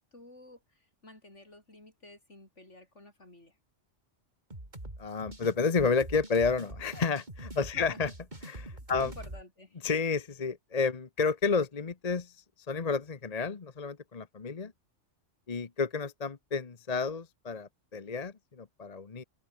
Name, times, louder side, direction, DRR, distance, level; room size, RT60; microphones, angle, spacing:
voice 1, 0.0-3.6 7.7-8.1 8.7-9.8, left 1 dB, 70° left, 7.0 m, -52 dB
sound 1, 4.5-9.4, right 1 dB, 35° right, 5.4 m, -44 dB
voice 2, 5.0-8.1 8.4-9.1 9.8-14.7 15.5-19.2, left 5 dB, 35° left, 1.0 m, -31 dB
open air
omnidirectional pair, 1.3 m